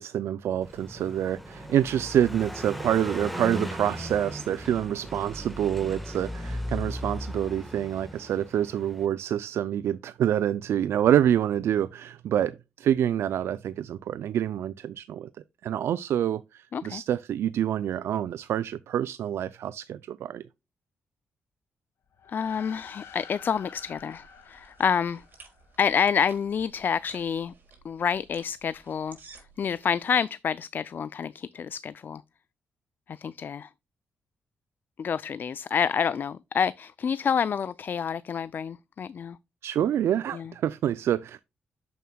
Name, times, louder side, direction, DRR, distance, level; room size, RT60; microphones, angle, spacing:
voice 1, 0.0-15.3 15.6-20.4 39.6-41.4, right 10 dB, 75° right, 0.3 m, -27 dB
Car passing by, 0.6-9.1, equal, ahead, 1.3 m, -37 dB
sound 1, 22.1-25.8, left 7 dB, 70° left, 1.6 m, -48 dB
voice 2, 22.3-25.2 25.8-27.5 27.8-29.2 29.6-32.2 33.1-33.7 35.0-39.4 40.3-40.5, left 7 dB, 50° left, 0.3 m, -28 dB
sound 2, 23.1-30.2, right 4 dB, 50° right, 4.2 m, -55 dB
8.5 x 7.2 x 2.2 m
cardioid pair, 95°, 4 cm